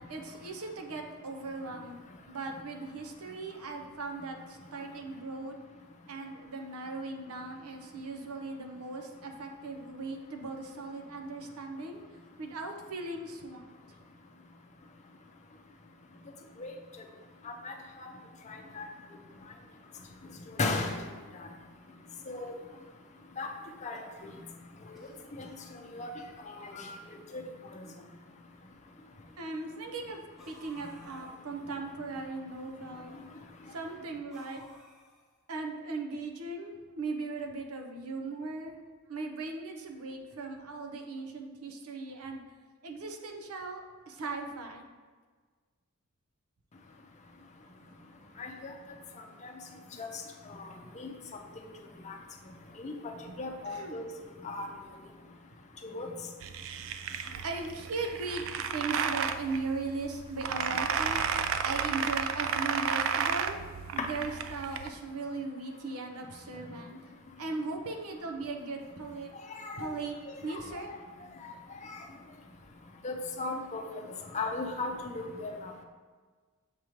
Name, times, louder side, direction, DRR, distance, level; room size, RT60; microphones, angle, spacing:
voice 1, 0.0-2.0 2.3-5.6 6.1-12.0 12.4-13.7 29.4-33.1 33.7-34.6 35.5-38.8 39.1-42.4 42.8-44.8 47.8-48.0 53.7-54.0 57.4-58.4 58.7-61.2 61.6-63.6 63.9-67.0 67.4-69.3 69.8-70.2 70.4-70.9, right 3 dB, 80° right, 3 dB, 0.7 m, -38 dB
voice 2, 18.5-18.9 20.5-20.9 21.4-21.5 22.3-22.5 23.4-23.5 23.8-24.3 24.9-25.0 25.4-25.5 25.9-26.1 26.4-26.9 27.3-27.4 48.4-48.7 50.0-50.1 50.5-50.6 51.0-51.1 52.1-52.2 52.8-54.1 54.4-54.7 55.8-56.1 69.5-69.9 70.5-70.6 70.9-71.0 71.8-72.0 73.0-73.8 74.3-75.7, left 3 dB, 30° left, 2 dB, 0.6 m, -36 dB
sound 1, 23.9-24.6 24.9-25.7 26.5-26.6 26.9-27.0 27.9-28.0 30.4-31.4 34.3-35.4, equal, ahead, 0.9 m, -56 dB
sound 2, 56.4-64.9, right 7 dB, 60° right, 0.3 m, -33 dB
6.6 x 3.0 x 5.0 m, 1.5 s
head